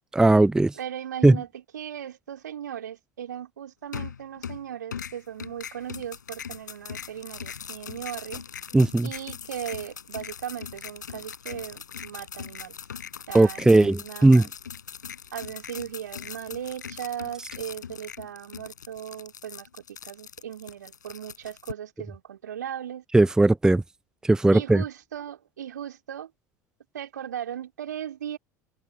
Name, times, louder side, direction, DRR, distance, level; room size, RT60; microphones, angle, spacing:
voice 1, 0.1-0.7 1.2-1.4 8.7-9.1 13.3-14.5 23.1-23.8 24.2-24.8, right 2 dB, 5° right, 0.6 m, -18 dB
voice 2, 0.8-1.5 1.7-8.4 9.0-12.8 13.3-14.5 15.3-23.0 24.5-26.3 26.9-28.4, right 9 dB, 70° right, 2.7 m, -37 dB
sound 1, 3.9-4.6 4.9-21.7, left 7 dB, 75° left, 5.0 m, -40 dB
figure-of-eight pair, 70°, 10 cm